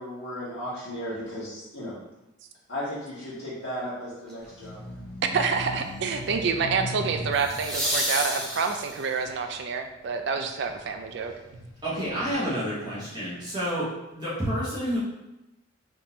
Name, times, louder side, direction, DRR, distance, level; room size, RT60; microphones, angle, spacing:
voice 1, 0.0-2.0 2.7-4.8, equal, 60° left, -12 dB, 1.0 m, -35 dB
sound 1, 4.3-4.6 7.3-9.2 12.1-12.2, equal, 5° left, 0.7 m, -30 dB
sound 2, 4.4-9.9 10.5-12.3, left 1 dB, 80° left, 0.6 m, -39 dB
voice 2, 5.3-11.7, right 5 dB, 55° right, 6 dB, 0.3 m, -28 dB
voice 3, 11.8-13.9 14.1-15.0, equal, 20° right, -9 dB, 1.0 m, -29 dB
3.5 x 2.5 x 2.8 m, 0.96 s
head